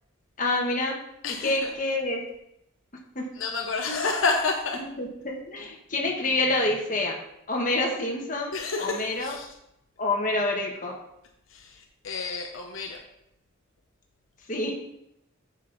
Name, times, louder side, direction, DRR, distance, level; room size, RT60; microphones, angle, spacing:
voice 1, 0.4-1.0 1.4-2.2 3.1-3.3 3.9-4.0 5.0-7.2 7.5-8.5 8.8-9.3 10.0-11.0 14.5-14.8, left 2 dB, 40° left, 0 dB, 1.5 m, -27 dB
voice 2, 1.2-1.7 3.3-4.8 8.5-9.5 11.5-13.0, left 4 dB, 75° left, 2 dB, 0.9 m, -29 dB
7.7 x 6.4 x 4.0 m, 0.79 s
head